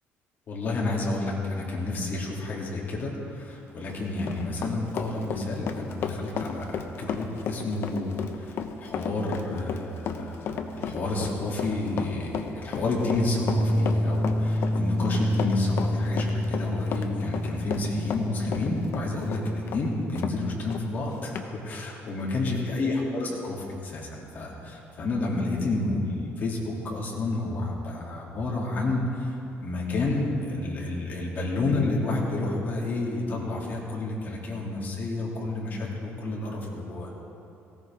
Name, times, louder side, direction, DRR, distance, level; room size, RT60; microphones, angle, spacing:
voice 1, 0.5-29.3 29.6-37.1, left 2 dB, 40° left, -3 dB, 2.7 m, -30 dB
Run, 3.7-20.4 20.7-20.8 21.4-21.5, left 7 dB, 55° left, 0.8 m, -33 dB
Clean A str pluck, 13.3-19.9, left 1 dB, 80° left, 2.5 m, -28 dB
18.5 x 16.0 x 3.6 m, 2.7 s
cardioid pair, 155°, 5 cm